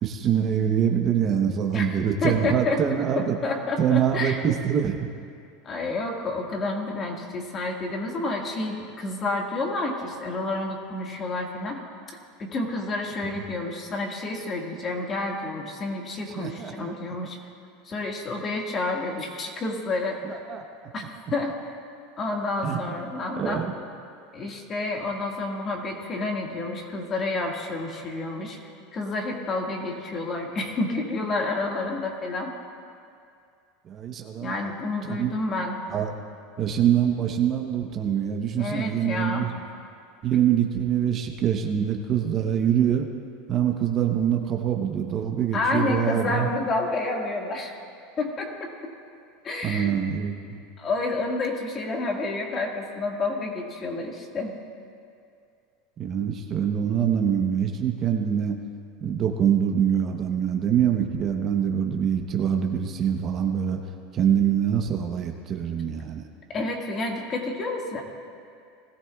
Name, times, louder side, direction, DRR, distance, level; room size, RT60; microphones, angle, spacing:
voice 1, 0.0-3.4 3.8-5.1 13.3-13.4 16.4-16.9 20.2-20.6 22.6-22.8 23.4-23.7 33.9-34.5 35.2-35.3 35.9-36.1 36.6-39.5 40.2-43.1 43.5-46.5 49.6-50.6 56.0-58.6 59.0-63.8 64.1-66.2, right 9 dB, 35° right, 3 dB, 0.9 m, -24 dB
voice 2, 2.2-2.8 3.1-4.4 5.6-11.8 12.4-17.4 17.8-20.4 20.9-21.0 21.3-21.6 22.2-23.7 24.3-28.6 28.9-32.5 34.4-35.8 38.6-39.5 45.5-47.7 48.2-48.9 49.4-50.0 50.8-54.5 66.5-68.0, left 2 dB, 30° left, 1 dB, 1.8 m, -29 dB
20.0 x 14.5 x 2.4 m, 2.4 s
supercardioid pair, 130°, 0 cm